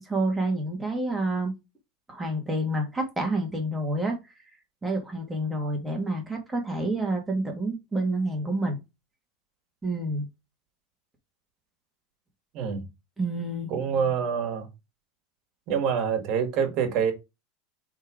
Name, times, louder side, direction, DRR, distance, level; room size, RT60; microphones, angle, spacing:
voice 1, 0.0-1.5 2.1-4.2 4.8-8.8 9.8-10.3 13.2-13.7, right 1 dB, 10° right, 1.7 m, -28 dB
voice 2, 12.5-12.9 13.7-14.7 15.7-17.1, right 7 dB, 45° right, 1.7 m, -26 dB
5.2 x 3.8 x 5.0 m
supercardioid pair, 155°, 0 cm